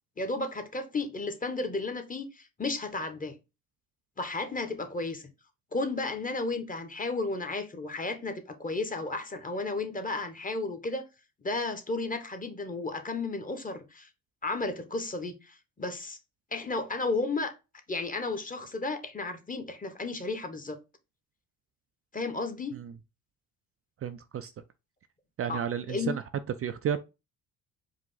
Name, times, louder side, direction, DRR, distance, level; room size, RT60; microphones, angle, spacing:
voice 1, 0.2-3.4 4.2-5.2 5.7-11.1 11.4-14.1 14.4-16.2 16.5-17.5 17.9-20.8 22.1-22.7 25.5-25.6 25.9-26.1, left 3 dB, 25° left, 1.1 m, -33 dB
voice 2, 24.0-24.5 25.4-26.2 26.6-27.0, right 8 dB, 40° right, 0.4 m, -32 dB
4.8 x 2.5 x 3.9 m
supercardioid pair, 75°, 35 cm